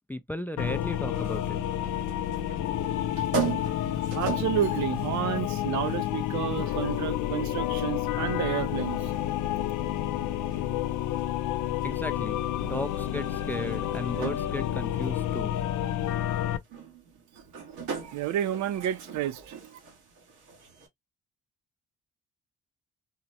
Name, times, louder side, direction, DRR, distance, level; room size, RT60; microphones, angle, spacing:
voice 1, 0.1-1.6 11.8-15.6, left 1 dB, 5° left, 0.3 m, -35 dB
sound 1, 0.6-16.6, left 12 dB, 80° left, 0.5 m, -30 dB
sound 2, 1.1-20.9, right 5 dB, 85° right, 1.4 m, -41 dB
voice 2, 4.1-9.0 18.0-19.6, right 11 dB, 70° right, 0.5 m, -30 dB
3.9 x 2.0 x 2.7 m
cardioid pair, 90°, 30 cm